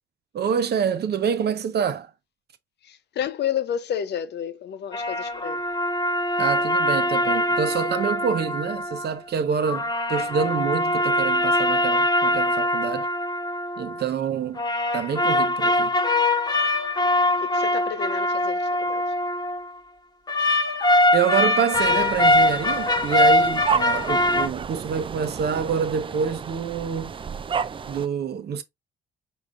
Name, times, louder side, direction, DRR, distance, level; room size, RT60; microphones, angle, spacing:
voice 1, 0.3-2.1 6.4-13.1 13.8-14.6 14.9-15.9 21.1-27.2 27.9-28.6, right 7 dB, 55° right, 0.9 m, -26 dB
voice 2, 2.8-5.6 17.4-19.0, left 9 dB, 55° left, 0.6 m, -30 dB
sound 1, 4.9-9.1 9.6-14.0 14.6-19.6 20.3-24.5, left 1 dB, 20° left, 1.1 m, -22 dB
sound 2, 21.7-28.1, right 6 dB, 25° right, 0.4 m, -32 dB
4.8 x 3.7 x 2.6 m
supercardioid pair, 60°, 20 cm